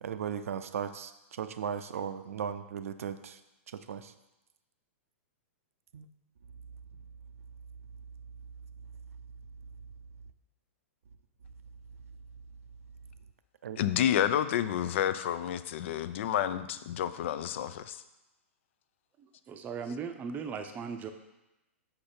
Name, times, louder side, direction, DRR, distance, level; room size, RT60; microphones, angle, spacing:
voice 1, 0.0-3.4 3.7-4.1 5.9-6.1 13.6-13.8, right 8 dB, 80° right, 11 dB, 0.5 m, -37 dB
voice 2, 13.8-18.0, left 10 dB, 60° left, 13 dB, 0.4 m, -30 dB
voice 3, 19.2-21.1, right 6 dB, 20° right, 7 dB, 0.6 m, -38 dB
5.7 x 5.0 x 4.3 m, 0.98 s
hypercardioid pair, 135°, 7 cm